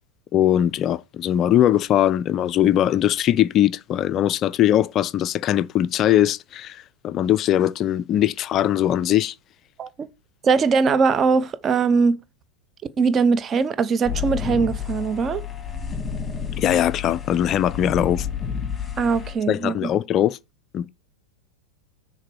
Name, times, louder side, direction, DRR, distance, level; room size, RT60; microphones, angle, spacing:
voice 1, 0.3-9.4 16.6-18.3 19.5-20.4 20.7-20.9, left 11 dB, 30° left, 0.3 m, -21 dB
voice 2, 10.4-12.1 13.0-15.4 19.0-19.9, right 5 dB, 25° right, 0.7 m, -21 dB
sound 1, 14.0-19.3, left 7 dB, 15° left, 2.0 m, -30 dB
6.6 x 4.3 x 6.2 m
figure-of-eight pair, 90°, 0 cm